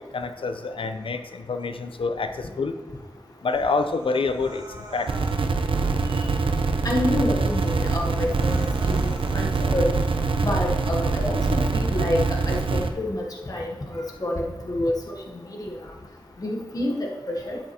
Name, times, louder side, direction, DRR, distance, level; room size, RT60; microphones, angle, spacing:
voice 1, 0.0-2.7 3.4-4.6 4.9-5.1, left 4 dB, 75° left, 8 dB, 0.6 m, -27 dB
Human voice, 3.4-5.5 5.9-6.5 7.0-7.1 7.3-9.5 9.9-10.5, right 1 dB, 45° right, 2.0 m, -46 dB
sound 1, 5.1-12.9, right 4 dB, 75° right, 0.6 m, -24 dB
voice 2, 6.8-9.0 9.3-9.9 10.4-12.2 12.5-15.7 16.4-17.6, left 1 dB, 40° left, 0 dB, 1.0 m, -28 dB
11.5 x 7.7 x 2.9 m, 1.3 s
wide cardioid pair, 70°, 9 cm